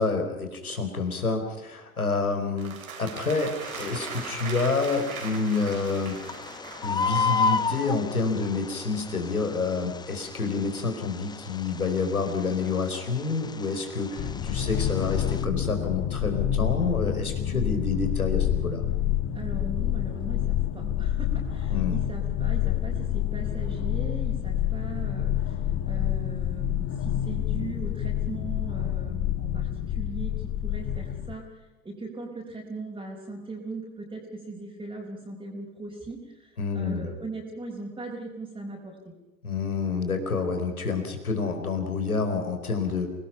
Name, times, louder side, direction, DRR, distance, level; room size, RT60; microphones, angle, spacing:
voice 1, 0.0-6.2 6.8-18.8 21.7-22.0 36.6-37.1 39.4-43.1, left 4 dB, 80° left, 6 dB, 4.5 m, -28 dB
sound 1, 2.6-7.4, right 6 dB, 70° right, 4.1 m, -39 dB
Bird, 3.6-15.4, left 5 dB, 10° left, 0.9 m, -34 dB
sound 2, 14.2-31.3, left 11 dB, 30° left, 1.6 m, -28 dB
voice 2, 19.3-39.0, right 2 dB, 10° right, -3 dB, 4.6 m, -39 dB
28.0 x 19.5 x 5.7 m, 1.1 s
figure-of-eight pair, 90°, 43 cm